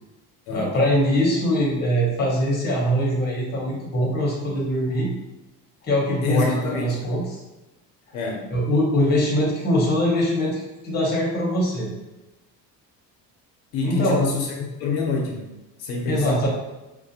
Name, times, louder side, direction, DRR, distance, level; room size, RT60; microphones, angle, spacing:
voice 1, 0.5-5.1 5.8-7.4 8.5-11.9 13.8-14.2 16.1-16.5, equal, 30° left, -3 dB, 0.7 m, -22 dB
voice 2, 6.2-7.2 8.1-8.5 13.7-15.5 15.8-16.5, left 4 dB, 85° left, 1 dB, 0.6 m, -26 dB
2.4 x 2.0 x 2.7 m, 1.1 s
cardioid pair, 150°, 35 cm